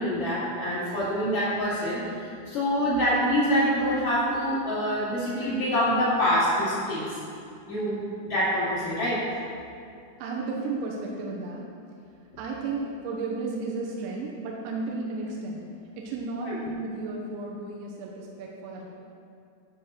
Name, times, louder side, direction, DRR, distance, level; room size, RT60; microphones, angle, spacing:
voice 1, 0.0-7.1 7.7-9.2 16.4-16.6, equal, 45° left, -11 dB, 3.4 m, -26 dB
voice 2, 10.2-11.7 12.4-15.6 16.0-18.9, right 3 dB, 80° right, -2 dB, 3.3 m, -33 dB
10.0 x 5.7 x 6.5 m, 2.4 s
omnidirectional pair, 5.2 m